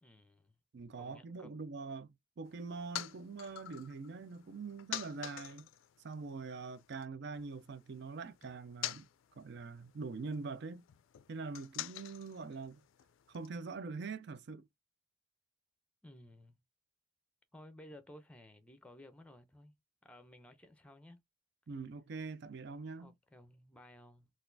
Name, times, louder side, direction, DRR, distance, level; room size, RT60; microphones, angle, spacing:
voice 1, 0.0-0.5 1.0-1.5 16.0-16.6 17.5-19.7 20.0-21.2 23.0-24.3, left 1 dB, 5° left, 0.5 m, -56 dB
voice 2, 0.7-5.7 6.0-9.0 9.4-10.8 11.3-12.8 13.3-14.7 21.7-23.1, right 4 dB, 55° right, 0.4 m, -44 dB
sound 1, 2.4-7.1 7.3-13.5, left 13 dB, 75° left, 0.4 m, -48 dB
4.0 x 2.4 x 2.6 m
head